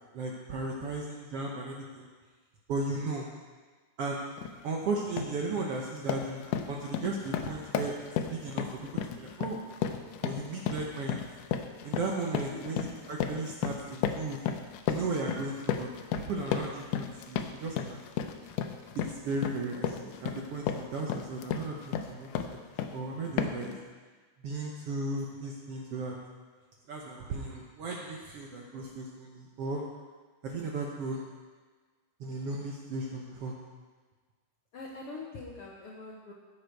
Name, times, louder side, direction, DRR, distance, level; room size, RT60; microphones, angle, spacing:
voice 1, 0.1-2.1 2.7-3.3 4.0-4.2 4.6-7.9 8.3-8.9 9.2-9.6 10.2-11.2 11.8-14.4 14.9-15.9 16.2-18.0 18.9-22.6 22.9-23.8 24.4-26.2 26.9-29.8 30.4-31.3 32.2-33.5, right 3 dB, 65° right, -1 dB, 1.6 m, -35 dB
sound 1, 4.4-4.6 5.0-5.4 5.7-23.0 23.4-23.7, left 8 dB, 85° left, 2.2 m, -34 dB
voice 2, 34.7-36.3, left 3 dB, 65° left, -2 dB, 1.4 m, -43 dB
14.0 x 8.0 x 4.6 m, 1.4 s
omnidirectional pair, 3.7 m